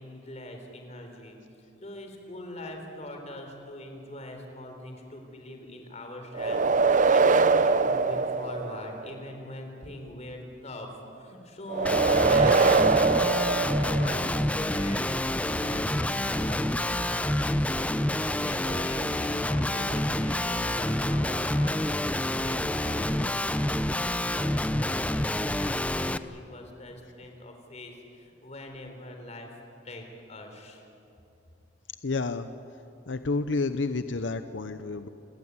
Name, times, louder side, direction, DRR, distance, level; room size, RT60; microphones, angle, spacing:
voice 1, 0.0-1.4 1.8-12.9 13.8-29.5 29.8-30.8, left 1 dB, 40° left, 4 dB, 3.9 m, -42 dB
sound 1, 6.3-9.1 11.7-14.4, right 4 dB, 45° right, 0.7 m, -23 dB
Guitar, 11.8-26.2, left 1 dB, 5° left, 0.6 m, -28 dB
voice 2, 32.0-32.5 33.1-35.1, left 3 dB, 85° left, 10 dB, 0.8 m, -30 dB
29.5 x 17.0 x 9.7 m, 2.8 s
head